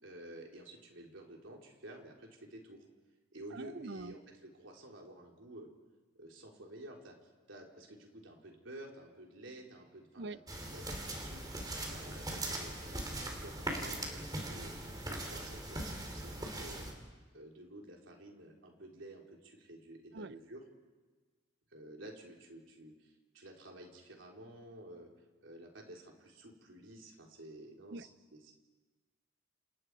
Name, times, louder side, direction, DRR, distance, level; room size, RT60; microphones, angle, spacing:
voice 1, 0.0-2.9 3.3-5.7 6.2-7.2 7.5-10.4 10.7-11.5 11.9-14.7 15.0-16.9 17.3-20.6 21.7-25.1 25.4-28.5, right 1 dB, 80° right, 0 dB, 3.8 m, -51 dB
voice 2, 3.5-4.1 10.2-10.4 20.1-20.3 27.9-28.0, right 3 dB, 60° right, 15 dB, 0.6 m, -43 dB
sound 1, 10.5-16.9, right 1 dB, 20° right, 3.3 m, -40 dB
29.0 x 28.0 x 4.9 m, 1.3 s
head